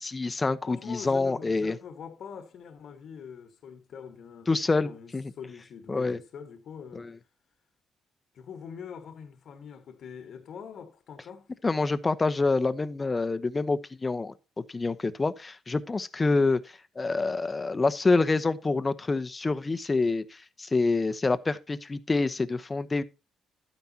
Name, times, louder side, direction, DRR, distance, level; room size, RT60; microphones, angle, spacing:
voice 1, 0.0-1.8 4.5-5.3 5.9-6.2 6.9-7.1 11.6-14.3 14.7-23.0, left 3 dB, 25° left, 0.8 m, -27 dB
voice 2, 0.7-4.5 4.8-7.1 8.3-11.5, left 7 dB, 65° left, 1.4 m, -44 dB
12.0 x 9.4 x 2.8 m
cardioid pair, 90°, 0 cm